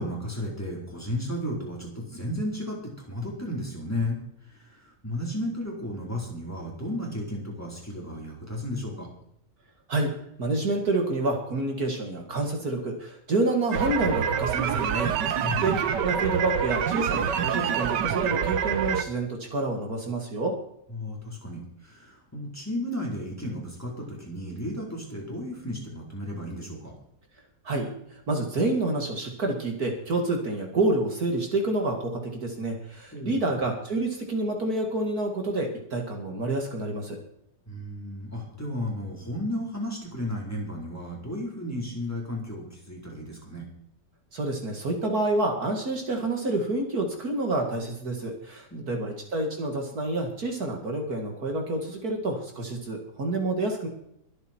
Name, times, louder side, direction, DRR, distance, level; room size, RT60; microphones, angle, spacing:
voice 1, 0.0-4.2 4.5-9.1 15.4-15.8 20.9-26.9 33.1-33.6 37.7-43.7 48.7-49.1, left 1 dB, 10° left, -3 dB, 4.2 m, -34 dB
voice 2, 10.4-20.5 27.6-28.0 28.3-37.2 44.3-53.9, right 2 dB, 55° right, 2 dB, 2.7 m, -28 dB
sound 1, 13.7-19.0, right 8 dB, 75° right, 1.6 m, -26 dB
23.0 x 8.2 x 4.6 m, 0.73 s
omnidirectional pair, 1.9 m